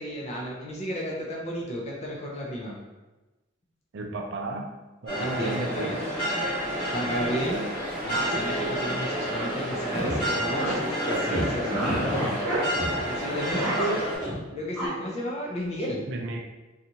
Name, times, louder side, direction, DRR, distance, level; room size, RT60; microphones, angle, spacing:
voice 1, 0.0-2.8 5.2-6.0 6.9-7.7 8.0-12.4 13.0-14.0 14.5-16.0, equal, 35° left, -3 dB, 0.4 m, -32 dB
voice 2, 3.9-4.7 5.0-5.9 16.1-16.4, right 2 dB, 70° right, 2 dB, 0.4 m, -34 dB
sound 1, 5.1-14.2, equal, 15° left, 1.3 m, -30 dB
sound 2, 9.7-10.2 10.6-10.8 11.0-13.0 13.3-14.4 14.8-14.9, right 1 dB, 5° right, 0.8 m, -29 dB
2.6 x 2.3 x 2.8 m, 1.1 s
head